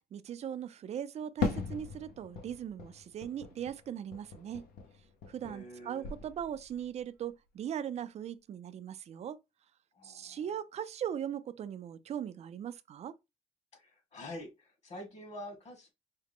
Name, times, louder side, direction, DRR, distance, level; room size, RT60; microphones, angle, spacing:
voice 1, 0.0-4.7 5.3-9.4 10.0-13.2, right 9 dB, 40° right, 0.4 m, -39 dB
Fireworks, 1.4-5.8 6.0-6.8, left 5 dB, 65° left, 0.9 m, -39 dB
voice 2, 5.4-6.1 9.9-10.5 13.7-15.9, left 1 dB, 40° left, 1.8 m, -47 dB
4.8 x 2.1 x 3.5 m
cardioid pair, 110°, 17 cm